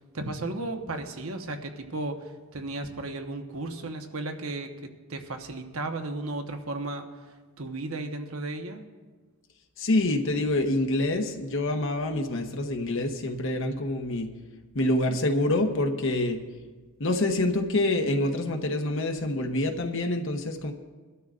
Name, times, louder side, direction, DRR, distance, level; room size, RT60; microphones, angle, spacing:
voice 1, 0.1-7.1 7.6-8.9, right 2 dB, 70° right, 5 dB, 1.1 m, -34 dB
voice 2, 9.8-14.3 14.7-16.4 17.0-20.7, left 1 dB, 60° left, 4 dB, 0.9 m, -26 dB
21.0 x 12.5 x 2.5 m, 1.4 s
head